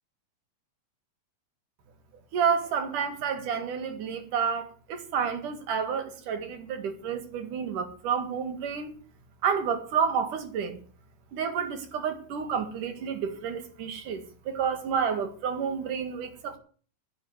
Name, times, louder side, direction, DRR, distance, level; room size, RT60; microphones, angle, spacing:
voice 1, 2.3-8.9 9.4-10.8 11.3-16.6, right 7 dB, 60° right, 3.2 m, -30 dB
9.7 x 9.3 x 9.3 m
omnidirectional pair, 4.3 m